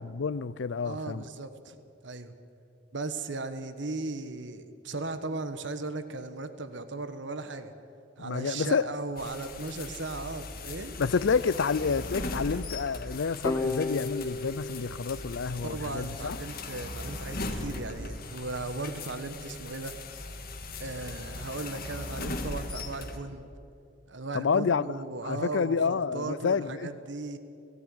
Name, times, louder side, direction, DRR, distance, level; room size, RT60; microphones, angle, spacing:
voice 1, 0.0-1.2 8.2-8.9 11.0-16.4 24.3-25.0 25.2-26.9, left 5 dB, 70° left, 0.5 m, -29 dB
voice 2, 0.8-1.8 2.0-2.3 2.9-7.7 8.2-10.9 15.6-19.9 20.8-23.5 24.1-27.4, right 3 dB, 65° right, 1.3 m, -37 dB
sound 1, 9.2-23.2, left 2 dB, 50° left, 1.8 m, -39 dB
sound 2, 13.4-16.2, left 2 dB, 15° left, 0.8 m, -35 dB
17.5 x 15.5 x 9.8 m
head